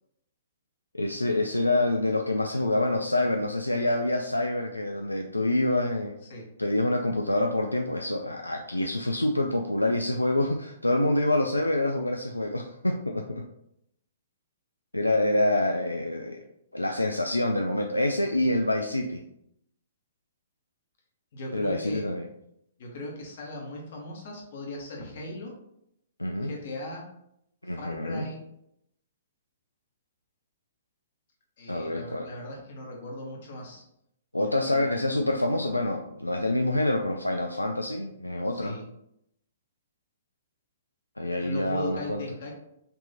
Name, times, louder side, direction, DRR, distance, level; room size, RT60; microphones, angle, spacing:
voice 1, 0.9-6.2 6.6-13.5 14.9-16.4 16.7-19.2 21.5-22.2 26.2-26.5 27.6-28.3 31.7-32.3 34.3-38.8 41.2-42.2, left 1 dB, 85° left, 3 dB, 0.3 m, -26 dB
voice 2, 21.3-22.1 22.8-25.5 26.4-27.1 27.7-28.5 31.6-33.8 34.3-35.0 38.5-38.9 41.2-42.5, left 2 dB, 50° left, 0 dB, 1.3 m, -39 dB
5.3 x 2.9 x 2.8 m, 0.77 s
figure-of-eight pair, 115°, 0 cm